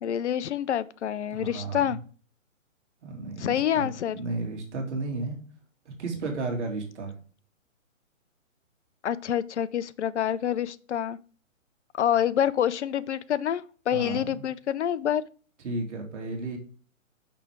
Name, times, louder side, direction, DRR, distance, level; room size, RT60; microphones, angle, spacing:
voice 1, 0.0-2.0 3.4-4.2 9.0-11.2 12.0-15.2, left 10 dB, 60° left, 0.6 m, -27 dB
voice 2, 1.3-2.0 3.0-5.4 5.9-7.1 13.9-14.4 15.6-16.6, right 3 dB, 60° right, 2.5 m, -33 dB
6.2 x 5.8 x 3.5 m
hypercardioid pair, 145°, 40 cm